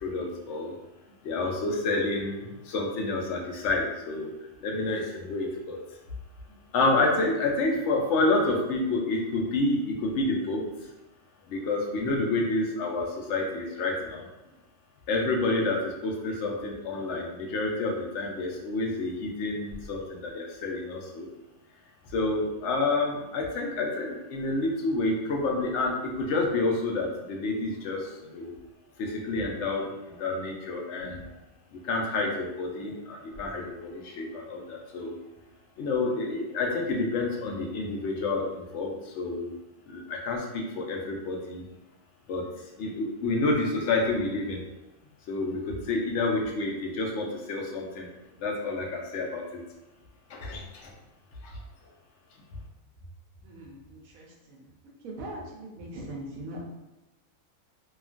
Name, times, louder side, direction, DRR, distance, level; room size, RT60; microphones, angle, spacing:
voice 1, 0.0-0.7 1.2-4.3 4.6-5.8 6.7-10.6 11.5-14.3 15.1-21.3 22.1-28.5 29.0-31.3 31.7-35.2 35.8-39.5 39.9-41.6 42.3-42.4 42.8-44.6 45.3-48.1 48.4-49.6 50.3-50.9 51.4-51.5, left 2 dB, 65° left, 0 dB, 0.8 m, -29 dB
voice 2, 53.4-54.7 55.0-56.6, right 1 dB, 80° right, -2 dB, 1.1 m, -41 dB
2.8 x 2.4 x 2.4 m, 1.0 s
omnidirectional pair, 1.4 m